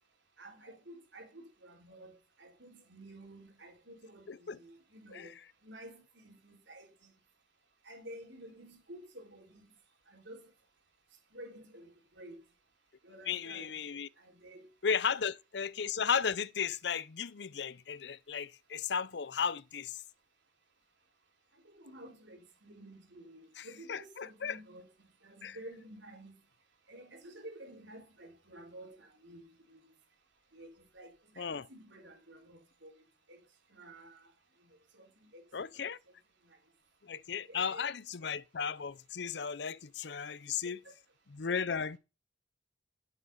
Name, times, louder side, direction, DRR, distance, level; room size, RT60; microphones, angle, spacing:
voice 1, 0.4-5.3 5.6-6.9 7.8-9.6 10.1-10.5 11.3-12.4 13.0-13.7 14.3-14.7 15.0-15.1 21.7-24.9 25.2-26.3 26.9-29.8 30.5-30.7 30.9-32.9 33.3-33.4 33.7-34.3 35.0-35.1 35.3-35.4 37.5-37.9 40.8-40.9, right 1 dB, 70° right, 4.2 m, -51 dB
voice 2, 4.3-4.6 5.1-5.3 13.3-14.1 14.8-20.0 23.6-24.6 25.4-25.6 31.4-31.6 35.5-36.0 37.0-40.8 41.4-42.0, left 6 dB, 60° left, 0.6 m, -35 dB
12.0 x 7.9 x 5.5 m
head